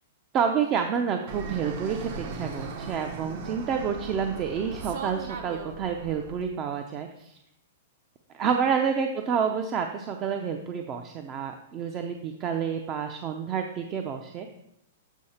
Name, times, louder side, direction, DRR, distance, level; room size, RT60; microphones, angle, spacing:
voice 1, 0.3-7.3 8.3-14.5, right 7 dB, 30° right, 5 dB, 0.6 m, -29 dB
Fixed-wing aircraft airplane, 1.3-6.4, right 4 dB, 55° right, 1.1 m, -38 dB
8.2 x 4.7 x 4.3 m, 0.81 s
hypercardioid pair, 135°, 0 cm